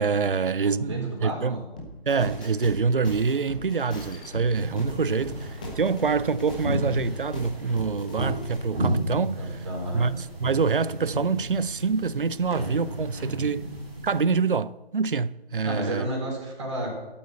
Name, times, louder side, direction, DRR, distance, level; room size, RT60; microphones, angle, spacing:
voice 1, 0.0-1.6 2.1-9.4 9.9-13.7 14.0-16.1, right 5 dB, 55° right, 0.6 m, -26 dB
voice 2, 0.6-1.6 9.4-10.1 15.6-16.9, right 1 dB, 30° right, 4.1 m, -32 dB
sound 1, 1.8-8.6, left 1 dB, 10° left, 0.9 m, -40 dB
sound 2, 4.5-14.2, right 1 dB, 10° right, 2.9 m, -33 dB
12.5 x 8.5 x 8.2 m
figure-of-eight pair, 155°, 31 cm